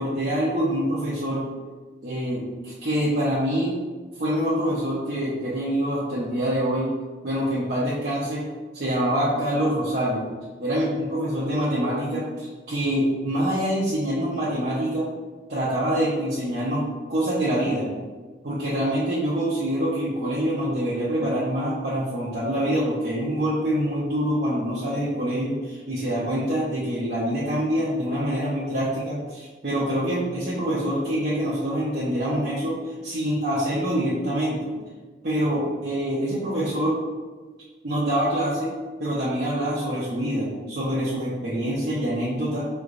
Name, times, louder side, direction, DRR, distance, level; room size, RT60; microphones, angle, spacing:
voice 1, 0.0-1.5 2.0-3.7 4.2-7.0 7.2-8.4 8.7-10.2 10.6-15.1 15.5-17.9 18.4-34.7 35.2-37.0 37.8-38.7 39.0-42.7, equal, 60° right, -10 dB, 0.8 m, -25 dB
5.0 x 3.3 x 2.5 m, 1.3 s
head